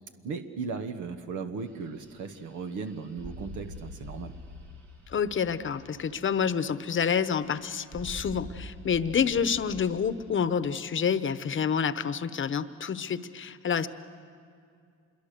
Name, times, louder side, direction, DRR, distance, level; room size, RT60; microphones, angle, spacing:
voice 1, 0.2-4.3, right 5 dB, 80° right, 7 dB, 1.3 m, -36 dB
sound 1, 1.6-10.3, equal, 65° right, 3.1 m, -46 dB
voice 2, 5.1-13.9, left 7 dB, 40° left, 13 dB, 0.9 m, -28 dB
26.0 x 22.5 x 6.7 m, 2.3 s
cardioid pair, 90°, 30 cm